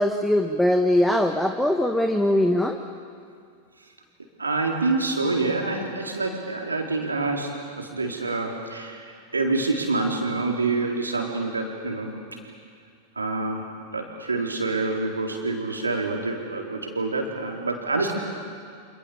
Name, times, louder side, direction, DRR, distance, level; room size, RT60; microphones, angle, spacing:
voice 1, 0.0-2.8, left 1 dB, 5° left, 5 dB, 1.5 m, -21 dB
voice 2, 4.4-12.1 13.2-18.1, right 3 dB, 80° right, 1 dB, 4.2 m, -27 dB
29.5 x 27.0 x 7.1 m, 2.2 s
figure-of-eight pair, 90°, 0 cm